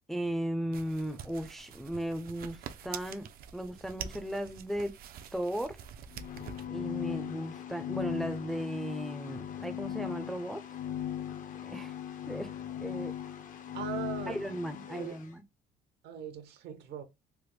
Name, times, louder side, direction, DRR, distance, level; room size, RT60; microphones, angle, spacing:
voice 1, 0.1-4.9 5.3-5.8 6.7-10.6 11.6-11.9 12.3-12.5 12.8-13.1 14.3-15.4, equal, ahead, 0.4 m, -36 dB
sound 1, 0.7-6.7, right 8 dB, 60° right, 0.5 m, -46 dB
sound 2, 6.1-15.2, left 10 dB, 50° left, 0.6 m, -38 dB
voice 2, 13.7-14.4 14.9-15.2 16.0-17.0, right 9 dB, 75° right, 0.9 m, -40 dB
3.4 x 2.1 x 3.1 m
cardioid pair, 110°, 17 cm